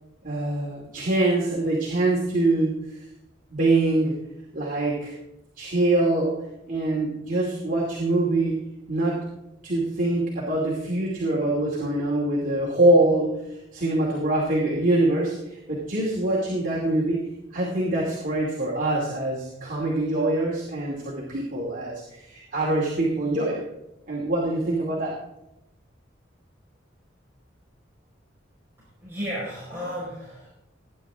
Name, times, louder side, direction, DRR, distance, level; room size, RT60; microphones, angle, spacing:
voice 1, 0.2-3.0 3.5-4.2 4.5-5.1 5.6-8.6 8.9-9.2 9.6-17.2 17.5-23.6 24.1-25.2, right 2 dB, 45° right, -4 dB, 2.6 m, -24 dB
voice 2, 29.0-30.5, equal, 15° right, -9 dB, 5.1 m, -33 dB
19.5 x 10.0 x 3.6 m, 0.88 s
head